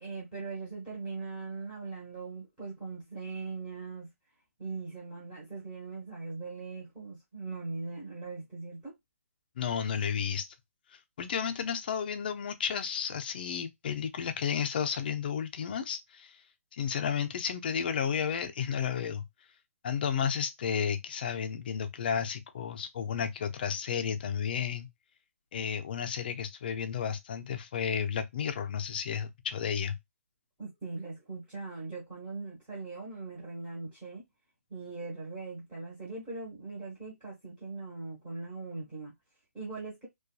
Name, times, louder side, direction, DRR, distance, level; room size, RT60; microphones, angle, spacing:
voice 1, 0.0-4.1 4.6-8.9 30.6-34.2 34.7-39.1 39.5-40.1, right 3 dB, 15° right, 1.1 m, -40 dB
voice 2, 9.6-10.5 10.9-16.4 16.7-19.3 19.8-24.9 25.5-30.0, left 7 dB, 40° left, 0.5 m, -32 dB
2.6 x 2.3 x 2.2 m
hypercardioid pair, 165°, 8 cm